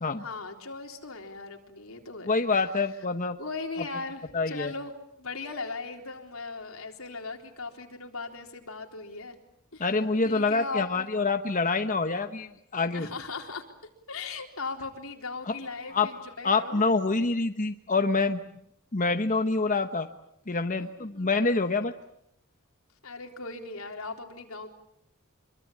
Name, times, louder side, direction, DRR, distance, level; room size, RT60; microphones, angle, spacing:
voice 1, 0.2-2.4 3.4-4.9 5.2-9.4 9.7-9.9 10.2-11.1 12.9-13.6 14.1-16.8 20.8-21.3 23.0-24.7, left 3 dB, 85° left, 3 dB, 3.8 m, -38 dB
voice 2, 2.3-3.4 4.3-4.7 9.8-13.1 15.4-15.5 15.9-16.1 16.4-18.4 18.9-20.1 20.5-21.9, left 3 dB, 40° left, 6 dB, 1.2 m, -26 dB
26.0 x 23.5 x 8.7 m, 0.75 s
head